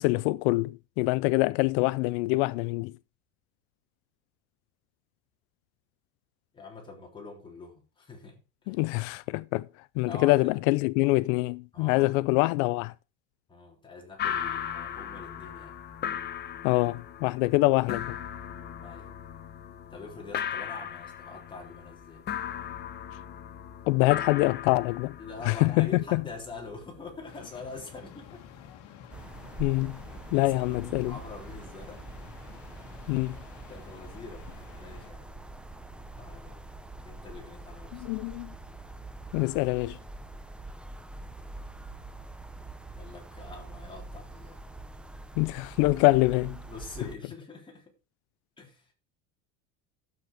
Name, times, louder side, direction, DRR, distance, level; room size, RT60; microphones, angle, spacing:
voice 1, 0.0-2.9 8.7-9.7 10.0-12.9 16.6-18.2 23.9-25.1 25.4-26.2 29.6-30.0 30.3-31.1 33.1-33.4 37.9-38.5 39.3-40.0 45.4-46.6, left 22 dB, 80° left, 0.5 m, -25 dB
voice 2, 6.5-8.8 10.1-10.5 11.7-12.2 13.5-15.8 18.8-19.1 19.9-22.2 25.2-28.4 30.1-32.0 33.7-34.5 34.8-35.3 36.1-36.6 37.0-38.1 43.0-44.6 45.9-46.0 46.6-47.9 48.6-48.9, left 3 dB, 15° left, 3.6 m, -45 dB
sound 1, 14.2-28.7, left 9 dB, 30° left, 0.9 m, -38 dB
sound 2, 27.3-35.1, left 8 dB, 55° left, 2.0 m, -51 dB
sound 3, 29.1-47.1, right 2 dB, 5° right, 0.7 m, -44 dB
12.0 x 8.1 x 4.8 m
cardioid pair, 160°, 35 cm